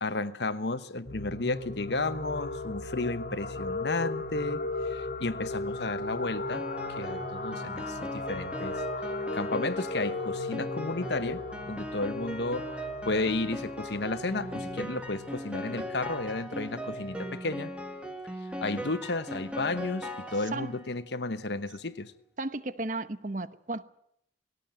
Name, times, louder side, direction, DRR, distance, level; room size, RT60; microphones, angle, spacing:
voice 1, 0.0-6.7 7.0-8.8 9.3-12.7 13.1-17.7 18.6-22.1, left 2 dB, 75° left, 1.1 m, -33 dB
sound 1, 1.0-17.4, left 2 dB, 50° left, 2.0 m, -37 dB
Piano, 6.5-20.9, equal, 5° right, 2.2 m, -39 dB
voice 2, 20.4-20.8 22.4-23.8, right 2 dB, 45° right, 1.0 m, -34 dB
20.0 x 17.5 x 9.1 m
head